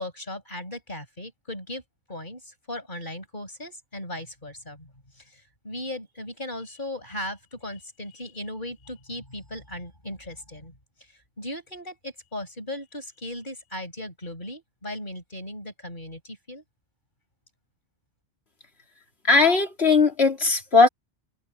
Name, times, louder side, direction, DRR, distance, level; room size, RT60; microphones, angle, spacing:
voice 1, 0.0-1.8 2.1-10.7 11.4-16.6, left 1 dB, 45° left, 6.6 m, -37 dB
voice 2, 19.3-20.9, left 4 dB, 70° left, 3.5 m, -18 dB
open air
omnidirectional pair, 1.1 m